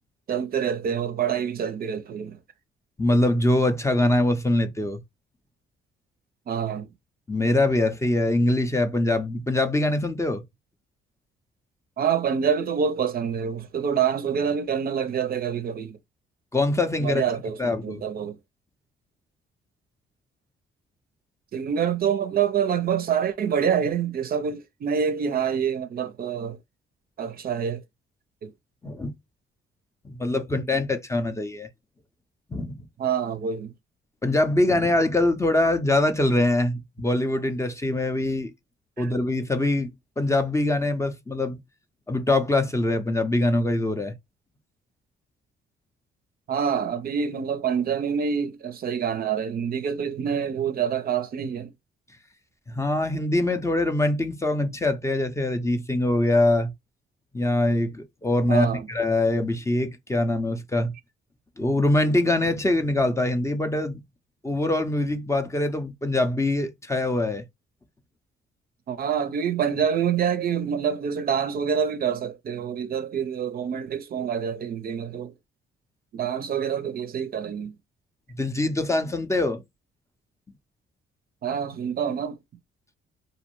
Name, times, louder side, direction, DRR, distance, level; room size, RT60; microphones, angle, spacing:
voice 1, 0.3-2.4 6.5-6.9 12.0-16.0 17.0-18.4 21.5-26.6 27.2-27.8 28.4-28.5 33.0-33.7 39.0-39.1 46.5-51.7 58.5-58.9 68.9-75.3 76.1-77.7 81.4-82.4, right 7 dB, 50° right, 0.5 m, -26 dB
voice 2, 3.0-5.0 7.3-10.4 16.5-17.2 17.6-18.0 28.8-29.1 30.0-31.7 32.5-32.9 34.2-38.5 39.0-39.9 40.2-41.6 42.1-44.1 52.7-56.7 57.3-60.9 61.6-64.0 64.4-67.4 78.4-79.6, left 2 dB, 15° left, 0.5 m, -23 dB
2.6 x 2.0 x 2.9 m
cardioid pair, 90°, 20 cm